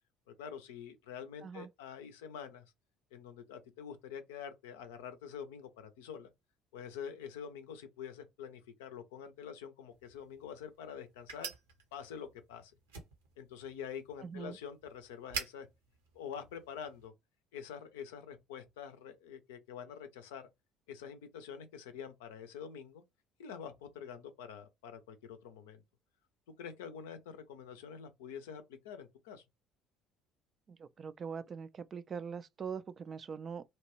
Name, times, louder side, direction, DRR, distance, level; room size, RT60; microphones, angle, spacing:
voice 1, 0.3-2.7 3.1-6.3 6.7-11.5 11.9-12.7 13.4-15.7 16.1-17.1 17.5-20.4 20.9-23.0 23.4-25.8 26.6-29.4, left 7 dB, 70° left, 0.5 m, -46 dB
sound 1, 9.9-17.1, right 6 dB, 75° right, 0.8 m, -48 dB
voice 2, 14.2-14.6 30.7-33.6, right 6 dB, 35° right, 0.3 m, -42 dB
2.9 x 2.2 x 2.9 m
figure-of-eight pair, 55°, 0 cm